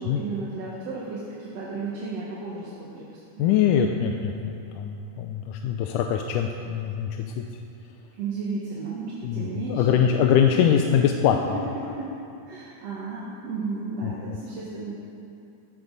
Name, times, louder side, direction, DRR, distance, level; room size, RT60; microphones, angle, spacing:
voice 1, 0.0-3.7 8.2-10.5 11.5-12.2 12.5-14.9, right 3 dB, 55° right, -6 dB, 2.5 m, -34 dB
voice 2, 3.4-7.4 9.2-11.6 14.0-14.4, left 8 dB, 80° left, 3 dB, 2.1 m, -23 dB
15.5 x 13.5 x 4.1 m, 2.8 s
omnidirectional pair, 3.7 m